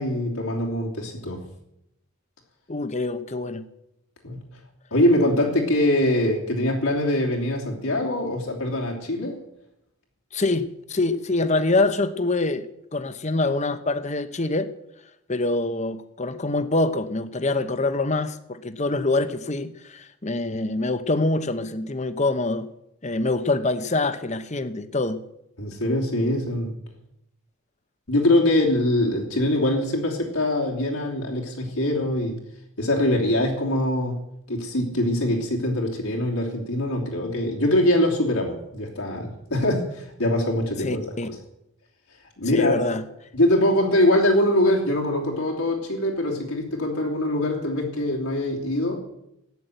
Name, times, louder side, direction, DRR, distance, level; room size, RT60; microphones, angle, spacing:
voice 1, 0.0-1.4 4.2-4.4 4.9-9.4 25.6-26.7 28.1-32.4 32.8-34.2 34.5-41.0 42.4-42.9 43.3-49.0, left 1 dB, 80° left, -2 dB, 3.1 m, -23 dB
voice 2, 2.7-3.6 10.3-14.7 15.3-22.7 23.0-25.2 40.8-41.3 42.5-43.0, left 2 dB, 30° left, 12 dB, 0.9 m, -25 dB
14.0 x 9.5 x 8.1 m, 0.82 s
head